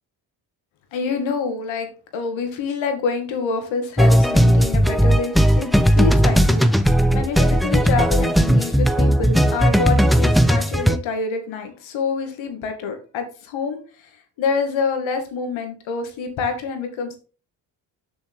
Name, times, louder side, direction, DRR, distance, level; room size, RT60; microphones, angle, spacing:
voice 1, 0.9-14.1 14.4-17.2, left 5 dB, 75° left, 6 dB, 2.1 m, -27 dB
sound 1, 4.0-11.0, equal, ahead, 0.7 m, -16 dB
7.0 x 6.3 x 3.6 m, 0.36 s
supercardioid pair, 60°, 46 cm